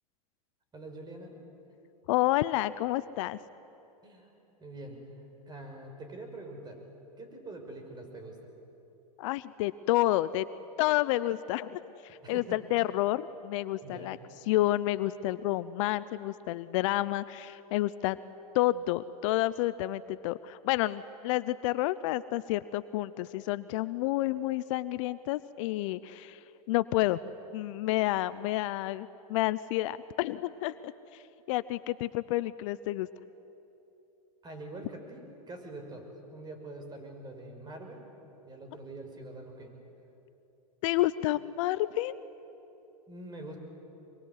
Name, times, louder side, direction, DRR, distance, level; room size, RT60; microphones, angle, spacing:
voice 1, 0.7-1.4 4.0-4.3 4.6-5.1 5.5-6.8 7.2-8.5 12.2-12.6 13.8-14.1 34.4-38.0 38.4-39.8 43.1-43.6, right 2 dB, 20° right, 4 dB, 5.8 m, -44 dB
voice 2, 2.1-3.4 9.2-10.5 10.8-14.2 14.5-18.2 18.5-26.4 26.7-27.2 27.5-30.9 31.5-33.1 40.8-42.2, left 16 dB, 55° left, 16 dB, 0.7 m, -29 dB
25.0 x 23.0 x 9.7 m, 3.0 s
hypercardioid pair, 105°, 20 cm